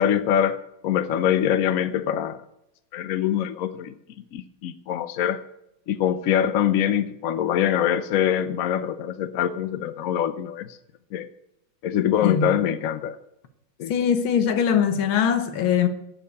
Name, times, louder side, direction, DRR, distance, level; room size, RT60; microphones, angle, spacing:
voice 1, 0.0-2.4 2.9-3.9 4.3-5.4 5.9-10.8 11.1-11.3 11.8-13.2 13.8-13.9, left 10 dB, 65° left, 0.8 m, -24 dB
voice 2, 12.2-12.5 13.9-15.9, left 8 dB, 85° left, 1.9 m, -21 dB
12.0 x 7.2 x 8.2 m
omnidirectional pair, 2.1 m